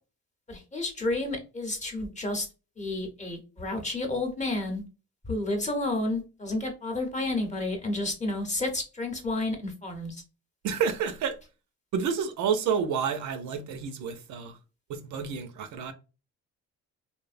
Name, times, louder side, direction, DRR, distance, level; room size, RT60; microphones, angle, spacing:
voice 1, 0.5-2.5 2.8-4.8 5.2-10.2, left 2 dB, 25° left, 0.8 m, -31 dB
voice 2, 10.6-11.4 11.9-14.6 14.9-15.9, right 7 dB, 75° right, 0.5 m, -29 dB
2.7 x 2.0 x 2.4 m
cardioid pair, 90°, 30 cm